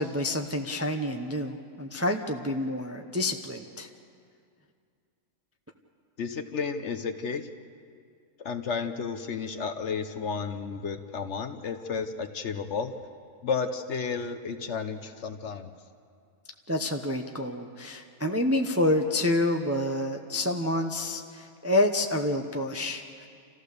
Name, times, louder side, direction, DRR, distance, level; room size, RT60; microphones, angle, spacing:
voice 1, 0.0-3.9 16.7-23.3, left 1 dB, 15° right, 4 dB, 0.6 m, -28 dB
voice 2, 6.2-7.5 8.4-12.9 13.4-15.7, left 5 dB, 55° left, 8 dB, 1.1 m, -32 dB
28.5 x 15.0 x 6.7 m, 2.3 s
omnidirectional pair, 1.6 m